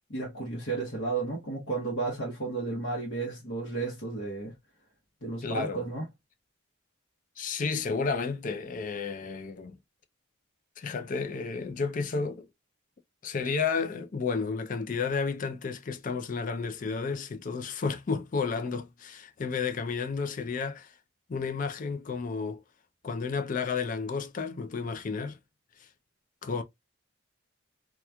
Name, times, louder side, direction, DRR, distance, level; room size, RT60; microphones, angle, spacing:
voice 1, 0.1-4.5 5.2-6.1, right 3 dB, 60° left, 0.9 m, -33 dB
voice 2, 5.4-5.8 7.4-9.8 10.8-12.5 13.2-20.9 21.3-22.6 23.0-25.4 26.4-26.6, left 5 dB, 40° left, 0.4 m, -32 dB
2.9 x 2.3 x 2.2 m
head